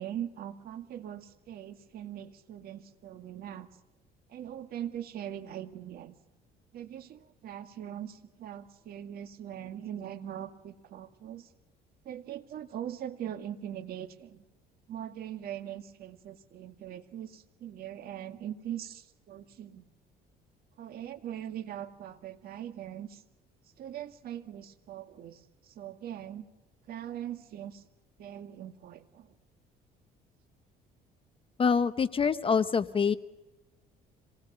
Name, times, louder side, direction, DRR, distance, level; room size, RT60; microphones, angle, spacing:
voice 1, 0.0-3.7 4.3-6.1 6.7-11.5 12.0-14.4 14.9-19.8 20.8-23.2 23.8-26.5 26.9-27.8 28.2-29.3, right 10 dB, 65° right, 8 dB, 2.1 m, -41 dB
voice 2, 31.6-33.1, left 6 dB, 30° left, 13 dB, 0.9 m, -25 dB
26.5 x 19.5 x 6.9 m, 0.99 s
cardioid pair, 110°, 17 cm